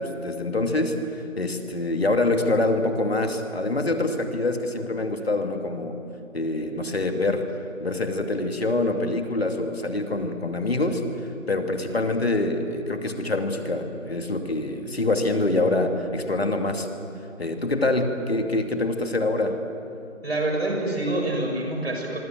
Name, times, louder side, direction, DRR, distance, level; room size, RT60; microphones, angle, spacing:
voice 1, 0.0-6.0 6.3-7.4 7.8-16.9 17.4-19.6, left 2 dB, 50° left, 5 dB, 2.6 m, -25 dB
voice 2, 20.2-22.2, right 1 dB, 50° right, 1 dB, 6.8 m, -26 dB
25.5 x 24.5 x 7.7 m, 2.6 s
figure-of-eight pair, 175°, 39 cm